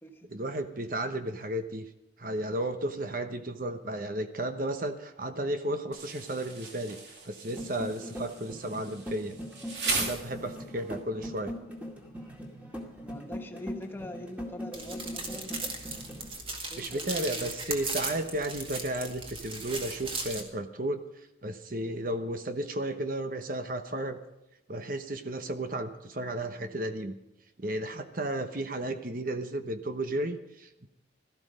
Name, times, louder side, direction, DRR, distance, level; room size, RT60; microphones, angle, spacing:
voice 1, 0.3-1.8 2.2-9.4 9.9-11.6 16.8-21.0 21.4-24.2 24.7-27.2 27.6-30.9, right 1 dB, 45° right, 8 dB, 1.0 m, -33 dB
Insect, 5.9-10.9, right 4 dB, 65° right, 3.1 m, -37 dB
sound 1, 7.5-16.3, equal, 10° right, 2.2 m, -41 dB
voice 2, 13.0-15.8 16.7-17.5, left 1 dB, 10° left, 4 dB, 1.2 m, -43 dB
sound 2, 14.7-20.4, right 3 dB, 30° right, 2.1 m, -37 dB
17.0 x 13.0 x 5.1 m, 0.87 s
head